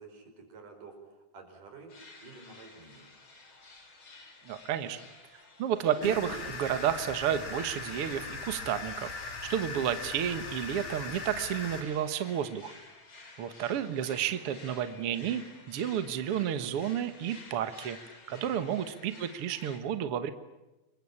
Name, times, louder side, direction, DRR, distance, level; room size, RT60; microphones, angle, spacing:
voice 1, 0.0-3.1 18.3-18.7, right 4 dB, 85° right, 5 dB, 6.7 m, -51 dB
sound 1, 1.9-19.8, left 3 dB, 40° left, 4.8 m, -52 dB
voice 2, 4.5-5.0 5.6-12.7 13.4-15.4 15.7-18.0 18.3-20.3, right 9 dB, 55° right, 11 dB, 2.0 m, -31 dB
sound 2, 6.0-11.8, left 4 dB, 80° left, 5.1 m, -39 dB
28.0 x 23.0 x 8.7 m, 1.0 s
omnidirectional pair, 3.6 m